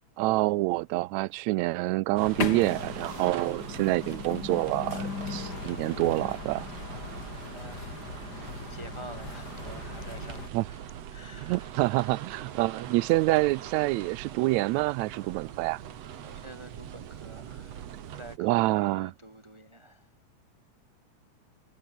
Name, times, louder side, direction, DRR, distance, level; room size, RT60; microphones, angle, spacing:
voice 1, 0.2-6.7 10.5-10.6 11.5-15.8 18.4-19.1, right 21 dB, 80° right, 1.7 m, -27 dB
sound 1, 2.2-10.5, left 5 dB, 35° left, 2.7 m, -38 dB
sound 2, 2.2-18.4, right 10 dB, 60° right, 2.5 m, -42 dB
voice 2, 6.9-12.4 16.2-20.1, right 1 dB, 10° right, 4.3 m, -49 dB
omnidirectional pair, 3.6 m